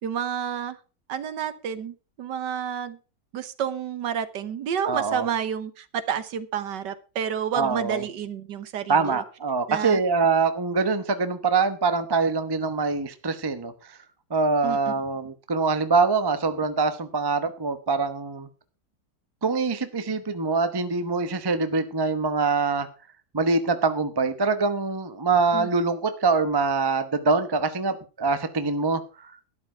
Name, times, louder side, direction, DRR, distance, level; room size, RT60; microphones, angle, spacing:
voice 1, 0.0-0.8 1.1-3.0 3.3-9.2 9.7-10.0 14.6-14.9 25.5-25.7, right 8 dB, 65° right, 13 dB, 1.5 m, -30 dB
voice 2, 4.9-5.3 7.5-8.0 8.9-13.7 14.3-18.5 19.4-22.9 23.3-29.3, right 4 dB, 20° right, 10 dB, 0.7 m, -24 dB
12.5 x 10.5 x 4.5 m, 0.33 s
omnidirectional pair, 2.1 m